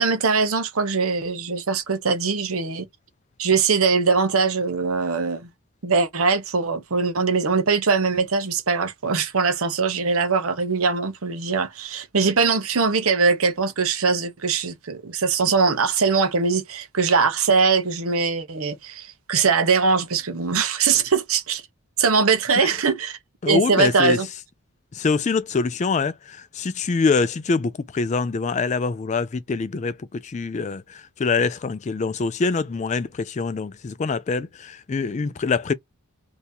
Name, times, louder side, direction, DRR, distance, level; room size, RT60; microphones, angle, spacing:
voice 1, 0.0-2.9 3.4-5.5 5.8-21.6 22.0-23.2 23.4-24.3, right 4 dB, 70° right, 0.8 m, -21 dB
voice 2, 23.4-24.2 24.9-35.7, left 4 dB, 30° left, 0.3 m, -24 dB
2.8 x 2.7 x 3.5 m
head